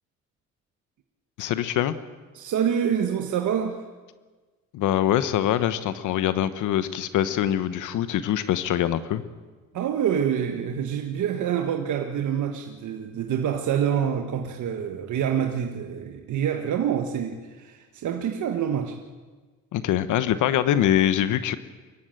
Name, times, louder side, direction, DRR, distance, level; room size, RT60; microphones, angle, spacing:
voice 1, 1.4-1.9 4.7-9.2 19.7-21.6, left 11 dB, 85° left, 12 dB, 1.1 m, -24 dB
voice 2, 2.3-3.8 9.7-19.0, right 8 dB, 75° right, 4 dB, 1.5 m, -26 dB
24.0 x 14.5 x 9.0 m, 1.4 s
cardioid pair, 90°, 30 cm